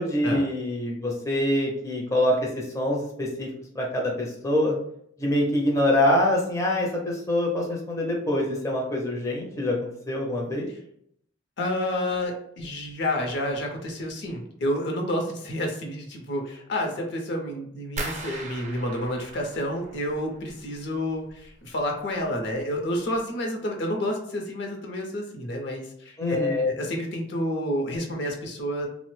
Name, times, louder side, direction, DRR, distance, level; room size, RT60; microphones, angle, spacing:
voice 1, 0.0-3.5 3.8-4.7 5.2-10.7 26.2-26.6, left 1 dB, 15° left, -2 dB, 0.5 m, -25 dB
voice 2, 11.6-28.9, left 1 dB, 60° left, 2 dB, 0.6 m, -29 dB
sound 1, 18.0-20.8 21.1-21.8 22.2-22.6 23.0-23.2, right 2 dB, 40° right, 0.5 m, -39 dB
2.9 x 2.0 x 3.1 m, 0.69 s
head